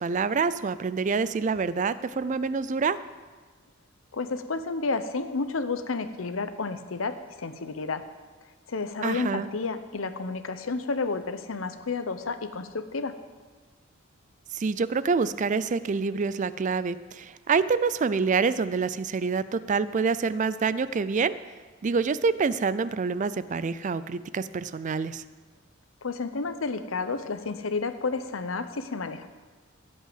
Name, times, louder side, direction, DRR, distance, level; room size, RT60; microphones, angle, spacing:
voice 1, 0.0-3.0 9.0-9.5 14.5-21.3 21.8-25.2, right 5 dB, 40° right, 15 dB, 0.4 m, -26 dB
voice 2, 4.1-8.0 8.7-13.2 26.0-29.3, left 4 dB, 85° left, 10 dB, 0.8 m, -31 dB
16.0 x 5.5 x 7.8 m, 1.4 s
head